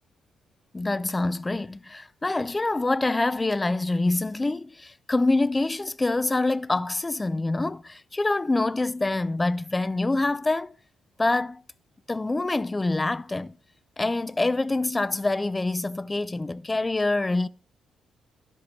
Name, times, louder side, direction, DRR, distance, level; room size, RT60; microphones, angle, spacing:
voice 1, 0.7-10.7 11.2-11.6 12.1-13.6 14.0-17.5, left 2 dB, 20° left, 0.4 m, -26 dB
11.0 x 7.6 x 3.2 m
cardioid pair, 90°, 0 cm